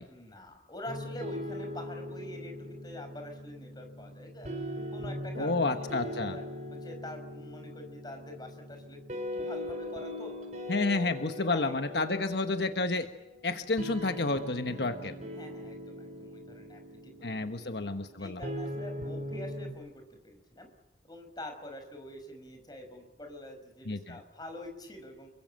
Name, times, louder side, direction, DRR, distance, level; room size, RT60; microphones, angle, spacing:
voice 1, 0.1-4.6 4.9-6.4 6.8-9.0 9.3-10.3 10.9-11.2 11.5-12.2 14.7-14.9 15.3-17.7 18.2-20.7 21.0-25.3, left 1 dB, 25° left, 5 dB, 5.6 m, -46 dB
sound 1, 0.9-19.7, left 1 dB, 40° right, 5.5 m, -40 dB
voice 2, 5.4-6.4 10.7-13.1 13.4-15.1 17.2-18.4 23.9-24.2, left 3 dB, 70° left, 7 dB, 1.3 m, -30 dB
28.0 x 23.5 x 7.6 m, 1.0 s
head